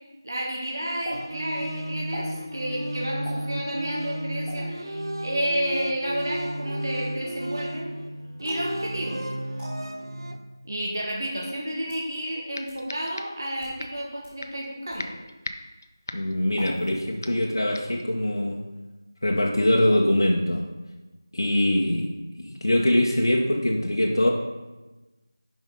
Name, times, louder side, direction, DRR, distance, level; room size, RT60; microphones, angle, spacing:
voice 1, 0.2-7.9 8.4-9.2 10.6-15.2, equal, 55° right, -2 dB, 1.5 m, -31 dB
sound 1, 1.0-1.2 2.1-2.3 3.2-3.4 4.4-4.6 5.5-5.7 8.4-8.7 9.6-9.7 10.7-10.8 11.6-12.1 12.7-12.8 13.5-13.8 14.2-14.3 14.9-15.1 16.5-17.0 17.3-17.7, right 1 dB, 10° right, 1.2 m, -41 dB
sound 2, 1.1-10.4, right 1 dB, 75° right, 0.8 m, -33 dB
sound 3, 12.0-12.1 12.5-13.5 13.8-14.0 14.4-14.7 15.0-16.9 17.2-17.5 17.7-18.0, left 2 dB, 45° left, 0.5 m, -39 dB
voice 2, 16.1-18.6 19.2-20.6 21.3-22.1 22.4-24.3, left 1 dB, 85° left, -2 dB, 1.0 m, -23 dB
10.5 x 5.2 x 3.8 m, 1.1 s
figure-of-eight pair, 175°, 2 cm